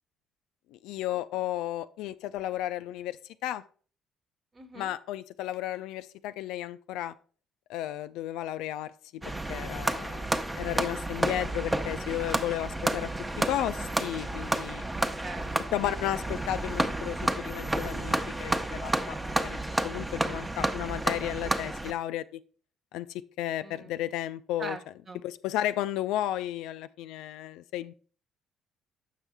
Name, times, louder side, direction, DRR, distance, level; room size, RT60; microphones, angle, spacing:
voice 1, 0.7-3.6 4.7-7.1 7.7-9.2 9.5-10.2 10.5-13.1 13.5-14.8 15.7-19.2 19.4-19.6 19.8-22.4 22.9-24.8 25.2-27.9, left 13 dB, 75° left, 13 dB, 0.3 m, -33 dB
voice 2, 4.5-4.9 14.9-15.7 23.6-23.9 24.6-24.8 25.1-25.2, right 3 dB, 40° right, 8 dB, 1.2 m, -42 dB
sound 1, 9.2-21.9, right 1 dB, 15° right, 0.8 m, -31 dB
7.3 x 5.5 x 3.5 m, 0.40 s
hypercardioid pair, 55°, 0 cm